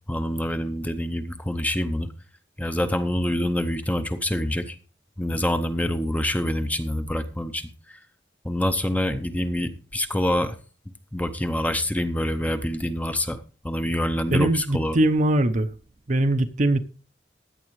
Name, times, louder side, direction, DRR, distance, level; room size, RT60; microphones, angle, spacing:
voice 1, 0.1-2.1 2.6-4.8 5.2-7.7 8.4-10.5 11.1-13.4 13.6-15.0, left 1 dB, 10° left, 0.7 m, -26 dB
voice 2, 14.3-15.7 16.1-16.8, right 1 dB, 40° right, 0.7 m, -21 dB
16.0 x 10.5 x 3.1 m
head